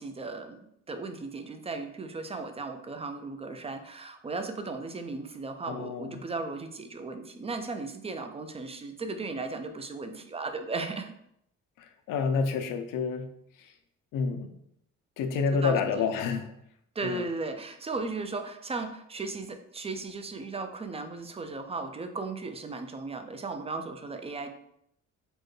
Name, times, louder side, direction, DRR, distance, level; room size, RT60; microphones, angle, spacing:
voice 1, 0.0-11.1 15.5-16.1 17.0-24.5, right 3 dB, 20° right, 7 dB, 0.3 m, -36 dB
voice 2, 5.7-6.1 12.1-13.3 14.1-14.5 15.2-16.5 17.0-17.2, left 5 dB, 70° left, 7 dB, 0.6 m, -28 dB
4.3 x 2.2 x 3.2 m, 0.75 s
cardioid pair, 80°, 33 cm